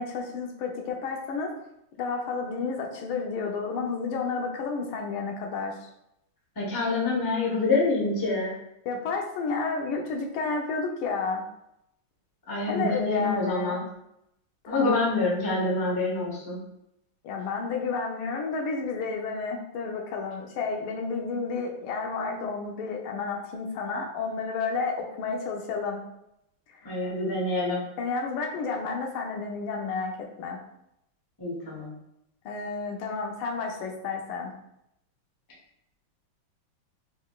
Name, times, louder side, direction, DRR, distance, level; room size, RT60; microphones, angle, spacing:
voice 1, 0.0-1.5 2.0-5.8 8.8-11.5 12.7-13.8 14.6-15.0 17.2-26.0 26.7-26.9 28.0-30.6 32.4-34.5, left 4 dB, 85° left, 1 dB, 1.6 m, -31 dB
voice 2, 6.6-8.5 12.5-13.8 14.7-16.6 26.8-27.8 31.4-31.9, left 2 dB, 35° left, -3 dB, 0.3 m, -26 dB
4.2 x 3.9 x 2.3 m, 0.81 s
omnidirectional pair, 2.3 m